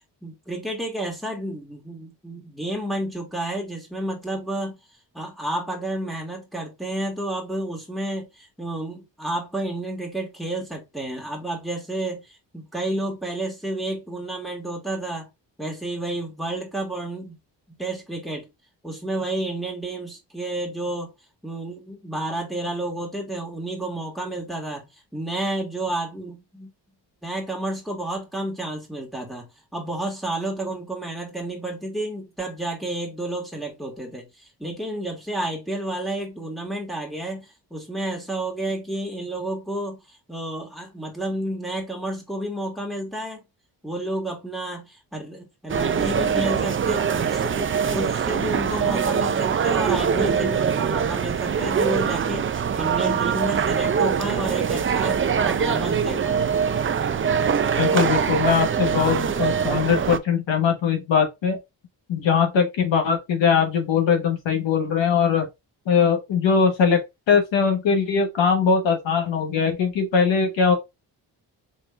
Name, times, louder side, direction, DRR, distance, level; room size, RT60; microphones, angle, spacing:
voice 1, 0.2-4.8 5.1-15.3 15.6-17.4 17.8-18.5 18.8-21.1 21.4-26.7 27.2-34.3 34.6-40.0 40.3-43.4 43.8-56.5, right 1 dB, ahead, 1.8 m, -30 dB
sound 1, 45.7-60.2, right 7 dB, 30° right, 0.4 m, -23 dB
voice 2, 57.8-61.6 62.1-65.5 65.9-67.0 67.3-70.7, left 6 dB, 85° left, 1.3 m, -21 dB
4.4 x 3.3 x 2.4 m
cardioid pair, 75°, 44 cm